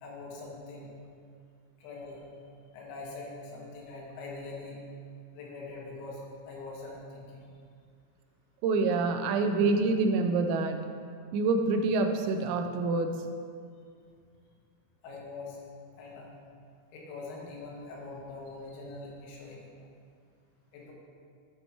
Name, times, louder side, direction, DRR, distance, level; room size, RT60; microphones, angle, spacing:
voice 1, 0.0-0.9 1.8-2.2 2.7-4.8 5.3-7.5 15.0-15.6 16.0-16.3 16.9-19.6 20.7-20.9, left 3 dB, 90° left, -3 dB, 4.4 m, -43 dB
voice 2, 8.6-10.8 11.3-13.2, right 3 dB, 85° right, 5 dB, 3.3 m, -26 dB
13.0 x 8.3 x 3.0 m, 2.3 s
omnidirectional pair, 6.0 m